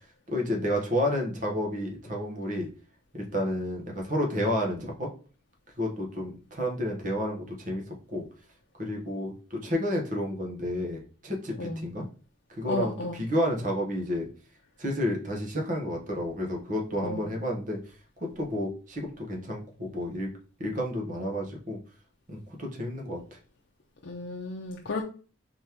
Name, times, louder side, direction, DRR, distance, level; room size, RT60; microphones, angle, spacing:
voice 1, 0.3-2.7 3.1-5.1 5.8-7.8 8.1-8.2 8.8-12.0 12.6-14.3 14.8-17.8 18.4-20.3 20.6-21.8 22.3-23.2, equal, 40° right, 0 dB, 1.2 m, -30 dB
voice 2, 12.7-13.2 17.0-17.2 24.0-25.0, left 2 dB, 70° left, -1 dB, 0.6 m, -33 dB
4.2 x 3.5 x 3.0 m, 0.38 s
head